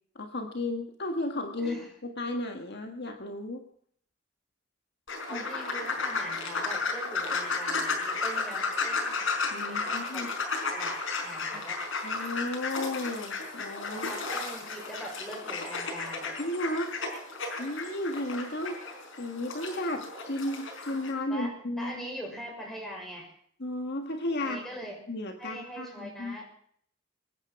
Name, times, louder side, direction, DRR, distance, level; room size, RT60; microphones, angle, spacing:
voice 1, 0.1-1.8 2.2-3.7 5.3-5.4 9.5-10.3 11.5-11.6 12.0-14.1 16.4-17.0 17.5-18.8 19.2-22.1 23.6-24.6 25.1-26.3, left 1 dB, 55° left, 4 dB, 1.6 m, -34 dB
sound 1, 5.1-21.1, left 4 dB, 75° left, 4.8 m, -33 dB
voice 2, 5.2-9.3 9.7-11.8 13.9-16.3 21.3-23.3 24.4-25.0 25.4-26.4, right 1 dB, ahead, -1 dB, 6.2 m, -42 dB
24.5 x 9.6 x 5.9 m, 0.62 s
head